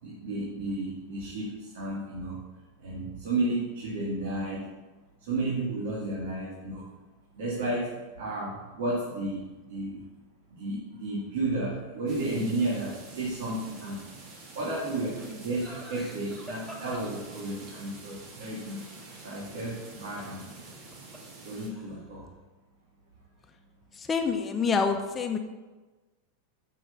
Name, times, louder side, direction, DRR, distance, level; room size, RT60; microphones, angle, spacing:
voice 1, 0.0-2.4 2.8-4.7 5.2-6.9 7.3-10.1 10.5-14.0 14.5-18.9 19.2-20.5 21.4-22.3, right 2 dB, 75° right, -4 dB, 2.2 m, -32 dB
sound 1, 12.1-21.7, right 3 dB, 50° right, 2.4 m, -48 dB
Laughter, 15.1-17.8 20.6-21.4 21.6-22.2, equal, 5° right, 2.5 m, -46 dB
voice 2, 23.9-25.4, left 5 dB, 20° left, 5 dB, 0.9 m, -27 dB
6.6 x 6.2 x 6.6 m, 1.2 s
hypercardioid pair, 115°, 0 cm